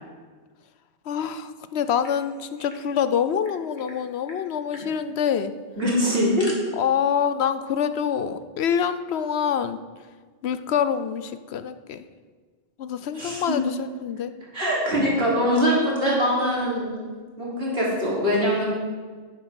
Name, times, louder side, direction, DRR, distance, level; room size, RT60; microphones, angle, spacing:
voice 1, 1.1-5.5 6.8-9.8 10.4-12.0 12.8-14.3, left 8 dB, 75° left, 12 dB, 0.9 m, -26 dB
sound 1, 1.7-2.8 3.1-3.2 3.4-4.0 4.3-4.4 4.7-4.9 5.8-6.6, left 1 dB, 45° left, 2.3 m, -43 dB
voice 2, 5.8-6.5 13.1-13.6 14.5-17.0 17.4-18.6, equal, 60° right, -5 dB, 3.8 m, -23 dB
9.9 x 9.6 x 5.8 m, 1.5 s
omnidirectional pair, 1.1 m